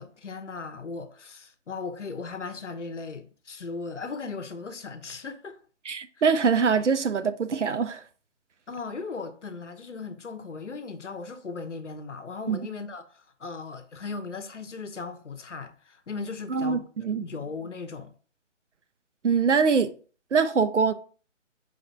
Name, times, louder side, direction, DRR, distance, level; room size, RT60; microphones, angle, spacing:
voice 1, 0.0-5.6 8.7-16.8 17.2-18.1, left 4 dB, 70° left, 0.7 m, -37 dB
voice 2, 5.9-8.0 12.5-12.7 16.5-17.2 19.2-19.9 20.3-20.9, right 5 dB, 70° right, 0.6 m, -23 dB
4.9 x 2.5 x 4.1 m
figure-of-eight pair, 145°, 37 cm